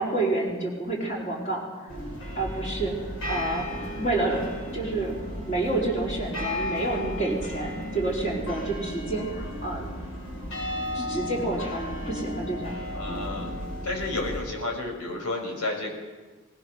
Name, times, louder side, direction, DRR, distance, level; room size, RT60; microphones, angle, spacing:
voice 1, 0.0-1.6 2.4-3.6 4.0-4.4 4.7-5.2 5.5-9.9 10.9-12.8, right 2 dB, 30° left, -3 dB, 4.4 m, -29 dB
sound 1, 1.9-14.4, left 1 dB, 60° left, 7.8 m, -34 dB
voice 2, 12.9-13.5 13.8-15.9, left 2 dB, 85° left, 2 dB, 6.0 m, -31 dB
23.5 x 19.0 x 6.4 m, 1.3 s
head